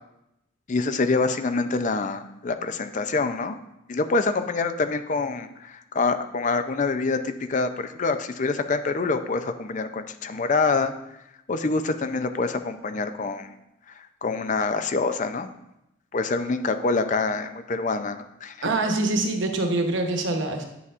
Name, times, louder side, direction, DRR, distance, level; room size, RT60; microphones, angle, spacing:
voice 1, 0.7-3.6 3.9-10.9 11.5-13.5 14.0-15.5 16.1-18.7, left 3 dB, 40° left, 9 dB, 0.5 m, -26 dB
voice 2, 18.6-20.6, right 2 dB, 65° right, 4 dB, 1.0 m, -24 dB
9.6 x 6.9 x 2.5 m, 0.87 s
head